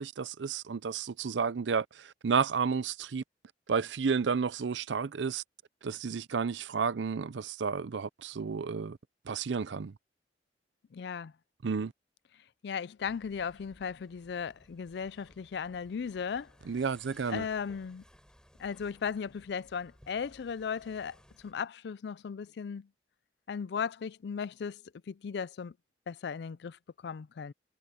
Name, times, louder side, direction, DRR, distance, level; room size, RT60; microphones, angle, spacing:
voice 1, 0.0-3.2 3.7-5.4 5.8-9.0 9.3-9.9 11.6-11.9 16.7-17.4, right 5 dB, 85° right, 0.5 m, -31 dB
voice 2, 10.9-11.3 12.6-16.5 17.3-18.0 18.6-22.9 23.5-25.7 26.1-27.5, left 6 dB, 65° left, 0.4 m, -37 dB
sound 1, 13.0-21.5, equal, 5° left, 7.5 m, -60 dB
head